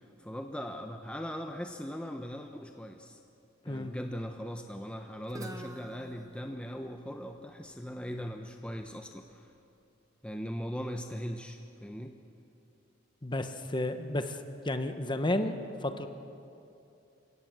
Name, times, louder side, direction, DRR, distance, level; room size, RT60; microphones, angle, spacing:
voice 1, 0.0-3.2 3.6-9.5 10.2-12.2, equal, 5° left, 4 dB, 0.8 m, -39 dB
Guitar, 5.3-9.1, right 1 dB, 15° right, 1.2 m, -49 dB
voice 2, 13.2-14.4 14.6-16.1, left 1 dB, 25° left, 8 dB, 1.1 m, -32 dB
28.0 x 17.0 x 7.7 m, 2.8 s
head